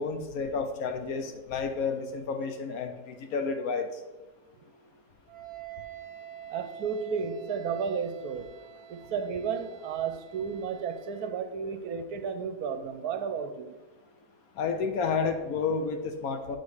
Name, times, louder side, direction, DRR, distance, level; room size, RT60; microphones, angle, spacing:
voice 1, 0.0-4.0 14.6-16.6, left 5 dB, 70° left, 7 dB, 1.1 m, -31 dB
Wind instrument woodwind instrument, 5.3-11.4, right 10 dB, 50° right, 1.2 m, -47 dB
voice 2, 6.5-8.5 8.9-13.7, right 6 dB, 70° right, 9 dB, 1.1 m, -33 dB
8.3 x 4.3 x 4.8 m, 1.1 s
omnidirectional pair, 1.7 m